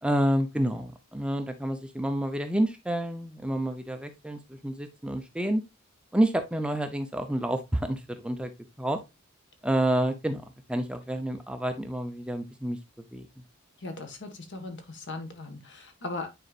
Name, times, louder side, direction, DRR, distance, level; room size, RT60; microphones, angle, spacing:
voice 1, 0.0-5.6 6.1-8.5 8.8-9.0 9.6-10.4 10.7-12.8 13.1-13.3, right 1 dB, 5° right, 0.6 m, -28 dB
voice 2, 13.8-16.3, left 2 dB, 60° left, 1.4 m, -38 dB
9.4 x 4.3 x 2.4 m
head